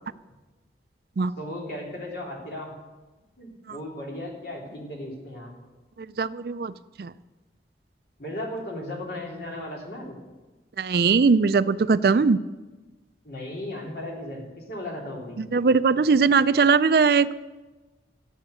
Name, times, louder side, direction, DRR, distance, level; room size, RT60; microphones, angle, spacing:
voice 1, 1.4-2.7 3.4-5.5 8.2-10.2 13.2-15.4, left 1 dB, 55° left, -1 dB, 3.2 m, -36 dB
voice 2, 6.2-6.7 7.0-7.1 10.8-12.4 15.5-17.3, right 5 dB, 55° right, 15 dB, 0.4 m, -20 dB
13.5 x 8.2 x 8.1 m, 1.2 s
head